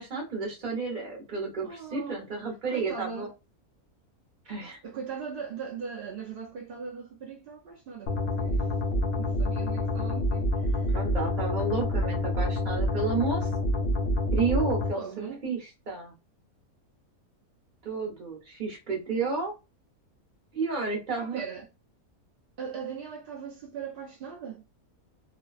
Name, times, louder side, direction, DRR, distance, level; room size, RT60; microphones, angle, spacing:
voice 1, 0.0-3.3 4.5-4.8 10.9-13.5 14.3-15.6 15.9-16.1 17.8-19.5 20.5-21.4, right 4 dB, 40° right, 0.8 m, -31 dB
voice 2, 1.6-2.2 2.7-3.3 4.8-8.7 9.2-11.0 14.9-15.5 21.2-21.7 22.6-24.6, right 6 dB, 65° right, 0.5 m, -39 dB
sound 1, 8.1-14.9, left 1 dB, 80° left, 0.5 m, -27 dB
2.5 x 2.1 x 2.3 m
omnidirectional pair, 1.6 m